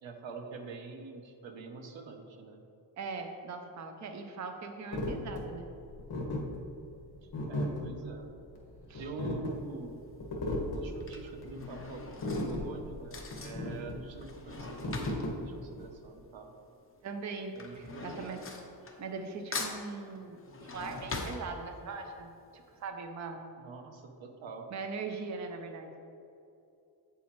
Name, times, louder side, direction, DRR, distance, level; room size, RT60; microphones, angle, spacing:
voice 1, 0.0-2.6 7.5-8.3 9.0-10.0 10.7-16.5 17.6-18.4 18.9-19.0 23.6-24.7, right 4 dB, 85° right, 4 dB, 0.9 m, -45 dB
voice 2, 3.0-5.7 8.9-9.0 17.0-18.4 19.0-23.5 24.7-25.9, right 4 dB, 40° right, 5 dB, 0.6 m, -40 dB
sound 1, 4.9-15.9, left 1 dB, 55° left, 1.5 m, -36 dB
Drawer open or close / Cutlery silverware, 9.5-9.9 10.7-16.6 16.9-19.3 19.5-22.0 22.5-22.6 22.8-22.9, left 3 dB, 30° left, 0.9 m, -42 dB
8.5 x 7.1 x 3.1 m, 2.7 s
wide cardioid pair, 160°, 44 cm